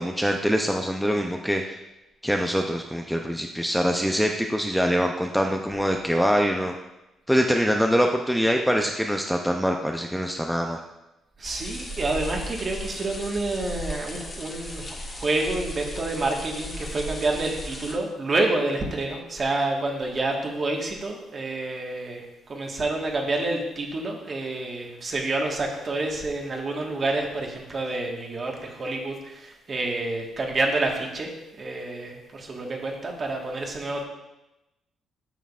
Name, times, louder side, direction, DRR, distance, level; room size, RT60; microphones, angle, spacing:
voice 1, 0.0-1.8 2.2-6.7 7.3-10.8, equal, ahead, 2 dB, 0.5 m, -24 dB
sound 1, 11.4-17.9, equal, 35° left, 1.2 m, -36 dB
voice 2, 11.4-31.3 31.6-34.0, right 2 dB, 40° right, 1 dB, 1.4 m, -28 dB
9.1 x 6.3 x 2.4 m, 0.96 s
cardioid pair, 90°, 0 cm